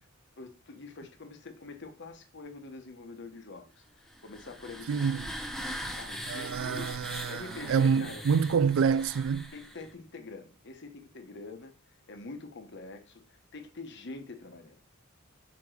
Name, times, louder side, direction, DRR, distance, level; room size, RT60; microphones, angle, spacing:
voice 1, 0.4-5.1 6.0-8.2 9.5-11.7 12.1-14.8, left 3 dB, 55° left, 1.1 m, -45 dB
sound 1, 4.1-9.9, equal, ahead, 0.8 m, -41 dB
voice 2, 4.9-5.3 6.3-9.5, right 6 dB, 65° right, 0.3 m, -27 dB
5.1 x 4.9 x 6.4 m
head